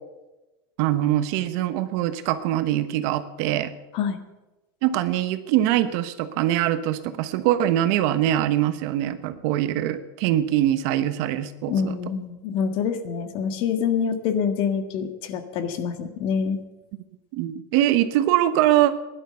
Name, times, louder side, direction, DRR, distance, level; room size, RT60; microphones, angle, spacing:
voice 1, 0.8-3.7 4.8-11.9 17.3-18.9, right 13 dB, 60° right, 11 dB, 1.1 m, -23 dB
voice 2, 11.7-16.6, left 7 dB, 50° left, 8 dB, 1.7 m, -26 dB
16.0 x 11.0 x 6.9 m, 1.1 s
supercardioid pair, 150°, 12 cm